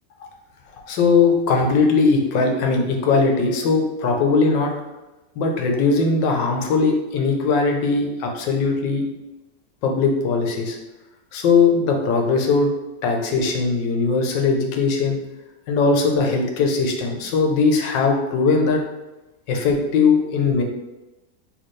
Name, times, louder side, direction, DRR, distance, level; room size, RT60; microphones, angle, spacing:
voice 1, 0.8-4.7 5.4-9.0 9.8-10.8 11.3-12.7 13.0-15.2 15.7-18.8 19.5-20.6, left 4 dB, 85° left, 2 dB, 1.4 m, -19 dB
4.2 x 3.3 x 3.1 m, 1.1 s
omnidirectional pair, 1.9 m